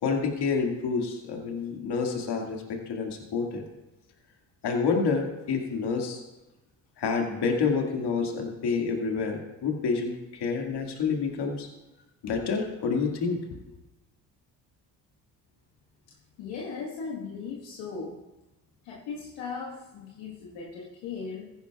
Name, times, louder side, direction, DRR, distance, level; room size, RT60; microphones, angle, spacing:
voice 1, 0.0-3.6 4.6-6.2 7.0-11.7 12.2-13.4, left 5 dB, 65° left, 2 dB, 2.1 m, -28 dB
voice 2, 16.4-18.2 18.8-21.5, left 5 dB, 80° left, -3 dB, 1.6 m, -38 dB
15.0 x 11.0 x 2.4 m, 1.0 s
hypercardioid pair, 55°, 44 cm